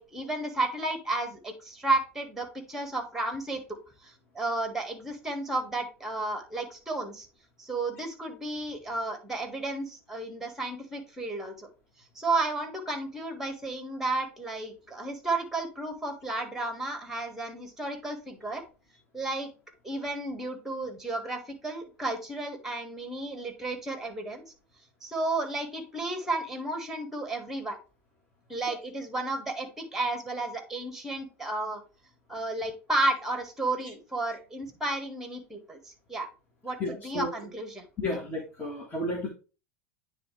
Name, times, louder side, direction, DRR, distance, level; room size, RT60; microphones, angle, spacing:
voice 1, 0.0-3.6 4.0-7.3 7.6-11.7 12.2-18.6 19.1-19.5 19.8-24.4 25.0-27.8 28.5-31.8 32.3-36.3 36.6-37.8, right 2 dB, 5° right, 5 dB, 1.7 m, -32 dB
voice 2, 36.8-37.3 38.0-39.3, left 1 dB, 25° left, -1 dB, 1.7 m, -32 dB
9.5 x 3.4 x 3.3 m, 0.34 s
hypercardioid pair, 85°, 8 cm